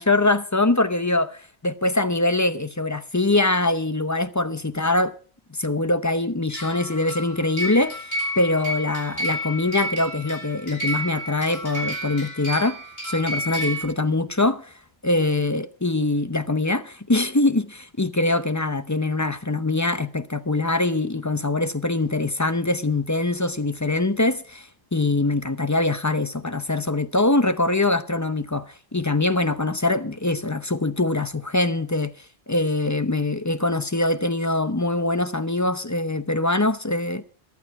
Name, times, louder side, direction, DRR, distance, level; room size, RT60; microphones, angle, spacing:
voice 1, 0.0-5.1 5.6-12.8 13.0-14.7 15.0-32.1 32.5-37.2, left 2 dB, 20° left, 0.7 m, -23 dB
sound 1, 6.5-13.8, equal, 70° left, 5.3 m, -31 dB
14.5 x 12.0 x 4.7 m
omnidirectional pair, 1.1 m